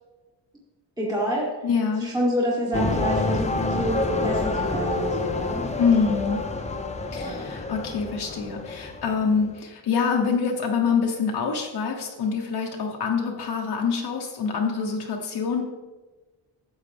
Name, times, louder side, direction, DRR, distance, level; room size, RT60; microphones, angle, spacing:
voice 1, 1.0-1.6 2.0-5.6 7.1-7.5, equal, 10° right, -5 dB, 1.5 m, -28 dB
voice 2, 1.6-2.1 5.8-6.4 7.1-15.6, left 5 dB, 60° left, 0 dB, 1.1 m, -25 dB
sound 1, 2.7-9.6, left 2 dB, 15° left, 0.6 m, -28 dB
13.0 x 8.0 x 3.5 m, 1.2 s
wide cardioid pair, 170°, 44 cm